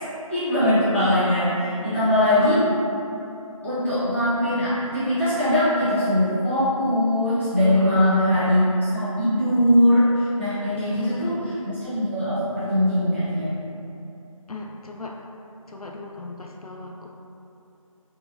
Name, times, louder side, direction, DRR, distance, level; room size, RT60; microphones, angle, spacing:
voice 1, 0.3-2.6 3.6-8.6 8.9-13.6, left 1 dB, 20° left, -15 dB, 1.0 m, -21 dB
voice 2, 2.2-2.7 7.6-8.2 10.7-11.5 14.5-15.2 15.7-17.1, left 3 dB, 85° left, 0 dB, 0.4 m, -33 dB
4.3 x 2.2 x 2.6 m, 2.8 s
figure-of-eight pair, 170°, 18 cm